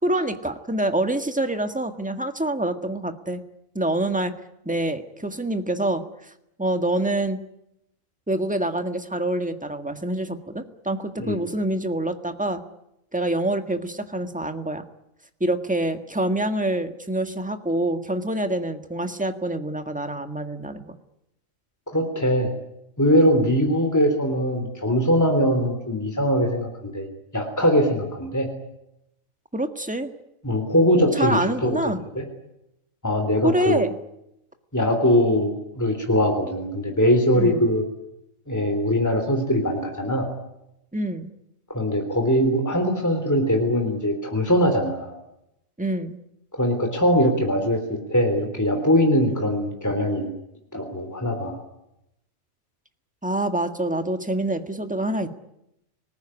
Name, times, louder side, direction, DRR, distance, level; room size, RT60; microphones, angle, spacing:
voice 1, 0.0-3.4 3.7-4.3 4.6-6.0 6.6-7.4 8.3-12.6 13.1-14.8 15.4-21.0 29.5-30.1 31.1-32.0 33.4-33.9 37.3-37.7 40.9-41.3 45.8-46.2 53.2-55.3, right 1 dB, 5° right, 7 dB, 1.6 m, -26 dB
voice 2, 21.9-22.5 23.0-27.1 27.3-28.5 30.4-31.8 32.1-32.2 33.0-33.8 34.7-37.8 38.5-40.3 41.7-45.1 46.6-50.3 50.7-51.5, equal, 10° left, 4 dB, 3.5 m, -21 dB
25.5 x 20.0 x 10.0 m, 0.85 s
omnidirectional pair, 1.4 m